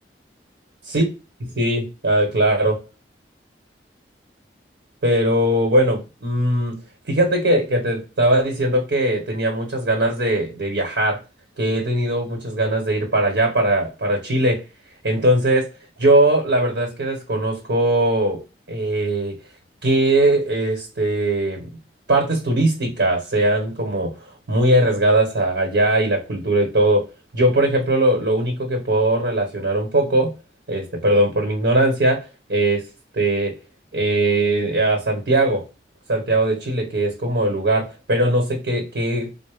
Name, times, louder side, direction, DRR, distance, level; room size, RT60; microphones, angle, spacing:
voice 1, 1.4-2.8 5.0-6.8 7.1-11.2 11.6-14.6 15.0-15.7 16.0-18.4 18.7-19.3 19.8-21.7 22.1-24.1 24.5-27.0 27.3-30.3 30.7-32.8 33.1-33.5 33.9-35.6 36.1-39.3, right 1 dB, 80° right, 1 dB, 1.0 m, -20 dB
4.2 x 2.0 x 3.3 m, 0.30 s
head